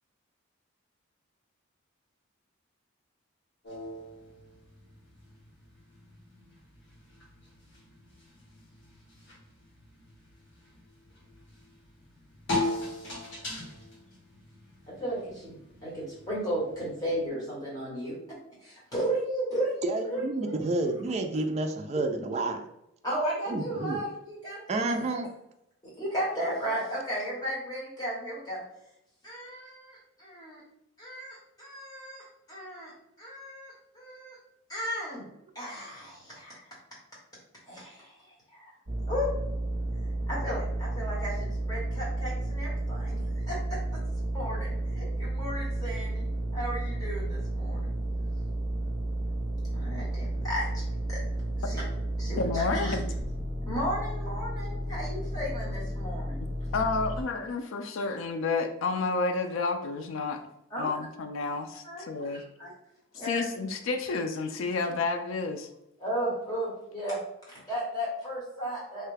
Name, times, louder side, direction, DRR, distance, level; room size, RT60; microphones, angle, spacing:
sound 1, 3.6-17.2, left 2 dB, 60° left, 1.3 m, -40 dB
voice 1, 14.9-18.2 18.6-20.7 21.3-21.4 23.0-25.1 26.0-28.6 29.2-30.6 31.0-32.9 33.2-34.4 34.7-35.2 35.5-36.6 37.7-38.7 39.1-39.3 40.3-43.8 44.3-46.3 46.5-47.9 49.7-50.8 51.1-51.2 51.6-51.8 52.2-52.9 53.6-56.4 60.7-60.9 61.8-62.7 63.1-63.4 66.0-67.2 67.5-69.1, equal, 20° left, -7 dB, 1.3 m, -35 dB
voice 2, 19.8-22.6 23.5-24.0 24.7-25.3, right 2 dB, 35° right, 5 dB, 0.3 m, -30 dB
sound 2, 38.9-57.2, right 1 dB, 50° right, 0.7 m, -32 dB
voice 3, 52.4-53.1 56.7-60.4 60.8-62.4 63.2-65.7, left 3 dB, 80° left, 6 dB, 0.4 m, -30 dB
3.2 x 2.3 x 3.3 m, 0.82 s
head